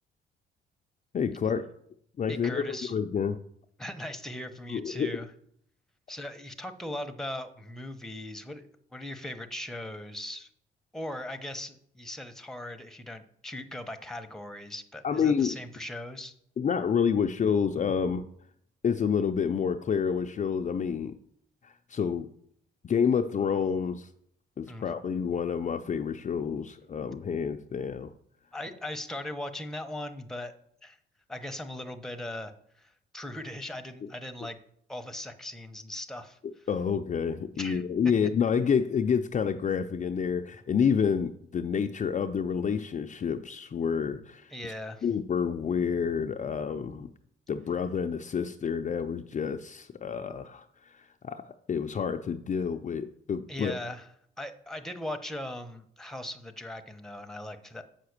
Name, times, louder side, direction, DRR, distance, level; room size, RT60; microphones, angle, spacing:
voice 1, 1.1-1.7 2.2-3.4 4.7-5.1 15.0-15.6 16.6-18.2 18.8-21.1 21.6-22.3 22.8-24.1 24.6-28.1 36.7-44.7 45.0-47.1 47.5-53.8, left 6 dB, 40° left, 6 dB, 0.5 m, -28 dB
voice 2, 2.3-2.9 3.8-5.3 6.1-10.5 10.9-16.3 24.7-24.9 28.5-30.5 30.8-31.0 31.3-34.6 34.9-36.4 37.5-37.8 44.5-45.0 53.5-54.1 54.4-57.8, left 1 dB, ahead, 8 dB, 1.0 m, -39 dB
7.7 x 5.8 x 6.6 m, 0.69 s
cardioid pair, 90°, 20 cm